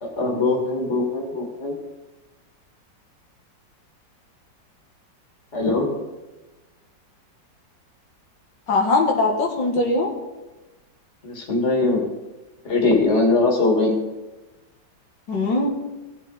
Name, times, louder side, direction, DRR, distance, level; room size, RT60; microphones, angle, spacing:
voice 1, 0.0-1.8 5.5-5.9 11.2-12.0 12.6-14.0, left 3 dB, 40° left, 1 dB, 2.4 m, -21 dB
voice 2, 8.7-10.1 15.3-15.7, left 2 dB, 80° left, 0 dB, 2.1 m, -20 dB
17.0 x 7.2 x 4.0 m, 1.1 s
omnidirectional pair, 2.0 m